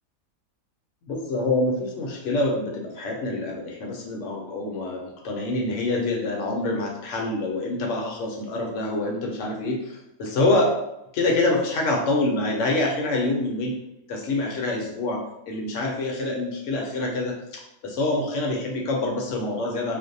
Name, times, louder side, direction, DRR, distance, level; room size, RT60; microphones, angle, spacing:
voice 1, 1.1-10.7 11.1-13.8 14.1-20.0, left 2 dB, 70° left, -1 dB, 0.8 m, -26 dB
2.5 x 2.0 x 2.6 m, 0.85 s
omnidirectional pair, 1.5 m